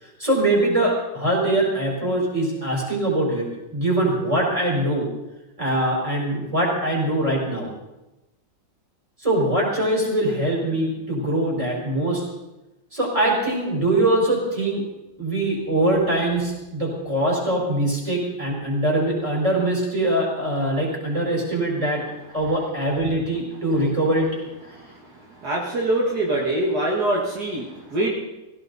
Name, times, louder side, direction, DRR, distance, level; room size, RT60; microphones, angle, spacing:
voice 1, 0.0-5.1 5.6-7.7 9.2-12.2 12.9-14.8 15.2-22.0 22.3-24.3 24.6-24.8, right 1 dB, 15° right, -3 dB, 4.9 m, -22 dB
voice 2, 25.4-28.1, right 1 dB, 60° right, -3 dB, 2.4 m, -23 dB
16.5 x 16.5 x 4.1 m, 1.0 s
omnidirectional pair, 2.0 m